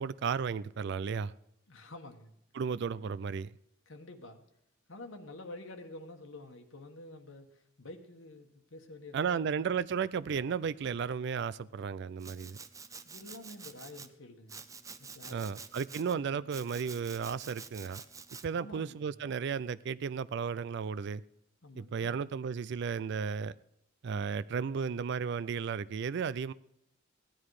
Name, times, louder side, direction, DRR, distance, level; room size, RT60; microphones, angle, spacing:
voice 1, 0.0-1.3 2.5-3.5 9.1-12.6 15.3-18.0 18.4-21.2 21.8-23.5 24.0-26.5, right 6 dB, 60° right, 0.4 m, -34 dB
voice 2, 1.7-2.3 3.9-4.4 4.9-9.7 13.0-14.6 15.0-15.5 16.0-16.5 18.5-19.2 21.6-22.1, left 2 dB, 75° left, 1.4 m, -49 dB
Domestic sounds home sounds, 12.2-14.1 14.5-16.1 16.5-18.5, right 5 dB, 15° right, 0.6 m, -48 dB
16.5 x 10.5 x 4.8 m
head